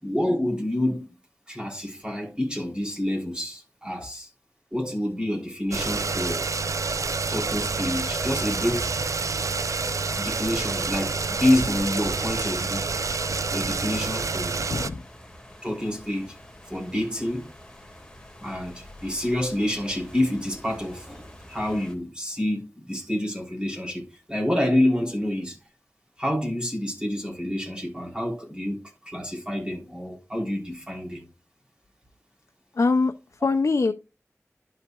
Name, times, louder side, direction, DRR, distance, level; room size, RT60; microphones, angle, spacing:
voice 1, 0.0-1.1 1.5-4.3 4.7-6.5 7.3-8.9 10.2-12.9 13.5-14.6 15.6-16.4 16.6-17.5 18.4-25.6 26.2-31.3, left 1 dB, 20° right, 3.3 m, -28 dB
sound 1, 5.7-14.9, right 4 dB, 85° right, 0.4 m, -28 dB
sound 2, 7.3-22.0, left 1 dB, 15° left, 2.0 m, -47 dB
voice 2, 14.6-15.0 32.7-33.9, left 3 dB, 75° left, 0.4 m, -24 dB
12.0 x 5.6 x 2.3 m
wide cardioid pair, 55°, 5 cm